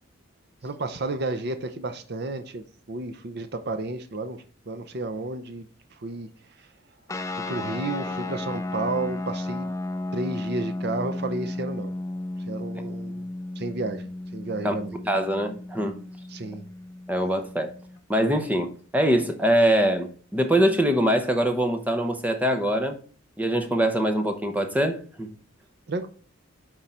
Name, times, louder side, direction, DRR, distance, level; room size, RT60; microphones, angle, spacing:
voice 1, 0.6-6.3 6.6-6.7 7.5-9.7 10.1-11.9 12.5-13.3 13.6-14.9 16.3-16.7 25.9-26.1, right 2 dB, 50° right, 0.6 m, -32 dB
sound 1, 7.1-18.0, left 2 dB, 15° left, 0.4 m, -34 dB
voice 2, 15.0-16.0 17.1-17.7 18.1-23.0 23.4-25.3, right 1 dB, 10° right, 0.8 m, -23 dB
9.5 x 3.8 x 4.3 m
head